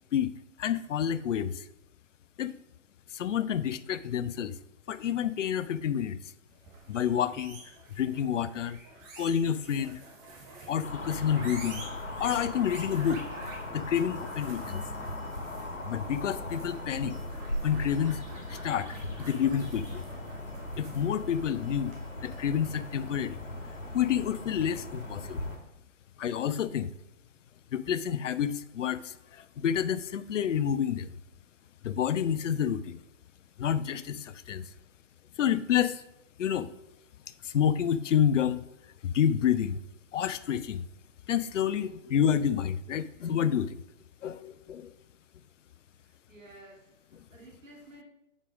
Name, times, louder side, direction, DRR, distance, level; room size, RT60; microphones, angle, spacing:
voice 1, 0.6-1.6 2.4-2.5 3.1-4.6 4.9-6.2 6.9-7.6 7.9-8.8 9.2-10.0 10.7-11.9 12.2-13.3 13.7-14.8 15.9-17.2 17.6-18.2 18.5-20.0 20.8-22.0 22.2-23.4 23.9-25.5 26.2-26.9 27.7-31.1 31.8-33.0 33.6-34.6 35.4-36.0 36.4-36.7 37.4-38.6 39.0-39.8 40.1-40.9 41.3-43.8 44.2-44.9, left 9 dB, 65° left, 15 dB, 0.5 m, -29 dB
sound 1, 6.5-23.0, right 3 dB, 25° right, 1.5 m, -49 dB
sound 2, 10.8-25.6, left 1 dB, 90° left, 2.2 m, -39 dB
voice 2, 46.0-48.0, right 1 dB, 75° right, 0 dB, 2.1 m, -53 dB
5.5 x 5.0 x 5.0 m, 0.83 s
figure-of-eight pair, 125°, 39 cm